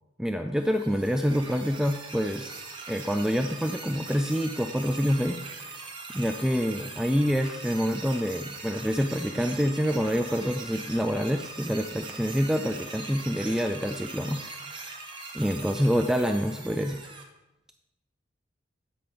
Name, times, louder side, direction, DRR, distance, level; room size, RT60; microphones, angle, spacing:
voice 1, 0.2-5.8 6.1-14.4 15.3-17.0, equal, 5° right, 6 dB, 0.3 m, -27 dB
sound 1, 0.6-17.2, right 3 dB, 25° right, 1.0 m, -41 dB
8.1 x 5.7 x 5.1 m, 0.97 s
head